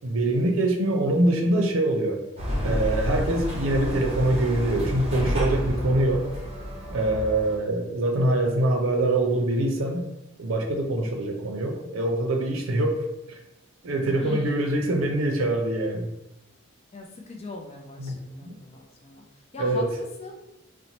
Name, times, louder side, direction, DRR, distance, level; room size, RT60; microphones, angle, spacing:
voice 1, 0.0-2.2 2.6-6.3 6.9-10.0 10.4-13.4 13.8-16.1 18.0-18.2 18.4-18.5 19.6-19.9, right 1 dB, 70° right, 2 dB, 0.5 m, -24 dB
sound 1, 2.4-7.6, equal, 30° right, 0.7 m, -30 dB
voice 2, 14.1-14.6 16.9-20.4, left 3 dB, 30° left, 1 dB, 0.4 m, -40 dB
2.9 x 2.1 x 3.9 m, 0.91 s
head